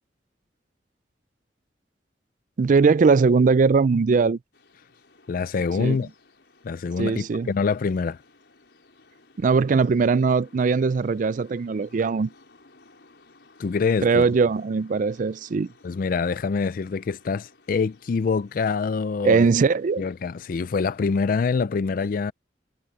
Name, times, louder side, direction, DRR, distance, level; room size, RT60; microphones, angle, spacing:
voice 1, 2.6-4.4 5.8-6.0 7.0-7.5 9.4-12.3 14.0-15.7 19.2-20.0, right 4 dB, 45° right, 0.4 m, -20 dB
sound 1, 4.5-21.2, left 3 dB, 75° left, 5.2 m, -57 dB
voice 2, 5.3-6.1 6.6-8.2 13.6-14.3 15.8-19.5 20.0-22.3, left 5 dB, 50° left, 0.4 m, -25 dB
head